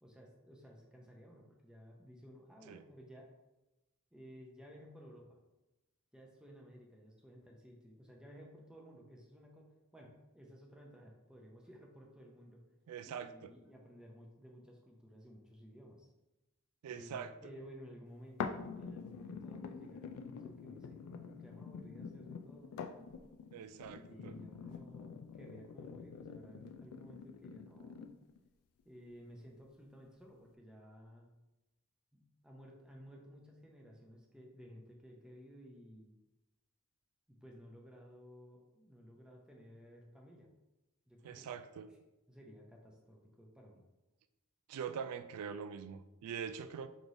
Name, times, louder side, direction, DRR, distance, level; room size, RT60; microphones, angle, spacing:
voice 1, 0.0-3.3 4.1-5.4 6.1-12.6 13.0-16.1 16.9-22.7 23.9-28.1 28.8-31.3 32.1-36.1 37.3-40.5 41.1-41.5 42.3-43.8, equal, 5° right, -1 dB, 0.5 m, -56 dB
voice 2, 12.9-13.5 16.8-17.5 23.5-24.4 41.2-41.9 44.7-46.9, right 7 dB, 90° right, 12 dB, 0.3 m, -43 dB
sound 1, 18.4-28.4 29.0-29.1, left 5 dB, 75° left, 0.3 m, -46 dB
5.1 x 3.1 x 2.6 m, 1.0 s
head